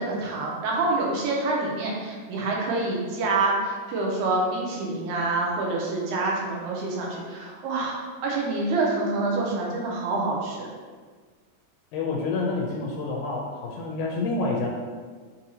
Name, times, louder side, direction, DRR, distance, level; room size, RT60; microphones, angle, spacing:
voice 1, 0.0-10.7 12.7-12.8, right 2 dB, 85° right, -3 dB, 2.1 m, -27 dB
voice 2, 11.9-14.7, left 3 dB, 85° left, -2 dB, 2.0 m, -28 dB
5.4 x 2.7 x 2.7 m, 1.5 s
omnidirectional pair, 3.3 m